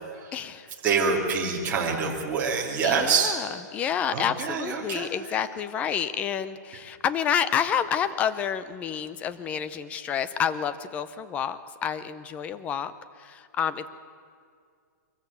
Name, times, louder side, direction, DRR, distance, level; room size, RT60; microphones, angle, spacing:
voice 1, 0.3-0.7 2.8-12.9 13.2-13.9, left 8 dB, 15° left, 14 dB, 0.6 m, -29 dB
voice 2, 0.8-3.3 4.1-5.1, right 5 dB, 15° right, -3 dB, 2.7 m, -26 dB
23.0 x 14.5 x 8.5 m, 2.2 s
hypercardioid pair, 165°, 10 cm